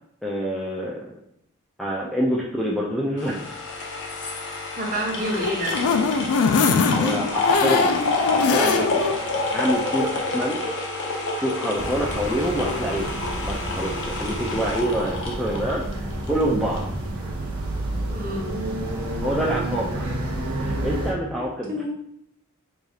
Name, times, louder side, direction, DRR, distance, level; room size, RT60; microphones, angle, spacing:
voice 1, 0.2-1.1 1.8-3.4 7.0-8.0 8.3-9.1 9.5-10.8 11.4-15.8 16.3-16.9 19.2-20.1 20.6-21.8, equal, ahead, -4 dB, 0.3 m, -26 dB
sound 1, 3.2-16.4 16.8-16.9, left 3 dB, 55° left, 0.7 m, -28 dB
voice 2, 4.8-5.9 18.1-18.6 21.7-21.9, equal, 40° right, -1 dB, 0.9 m, -28 dB
sound 2, 5.2-9.2 9.6-9.7 10.0-10.1, left 5 dB, 80° left, 0.4 m, -22 dB
sound 3, 11.7-21.1, right 1 dB, 80° right, 0.8 m, -30 dB
4.8 x 2.7 x 2.4 m, 0.75 s
head